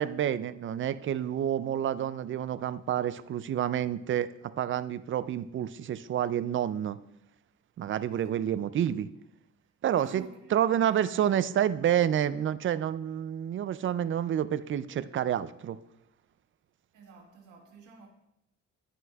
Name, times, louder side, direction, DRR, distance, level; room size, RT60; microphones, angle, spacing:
voice 1, 0.0-4.3 4.6-7.0 7.8-9.1 9.8-10.2 10.5-15.8, right 10 dB, 40° right, 0.4 m, -29 dB
voice 2, 8.1-8.7 9.9-11.3 16.9-18.1, right 6 dB, 80° right, 1.5 m, -50 dB
11.0 x 5.9 x 2.3 m
cardioid pair, 90°, 30 cm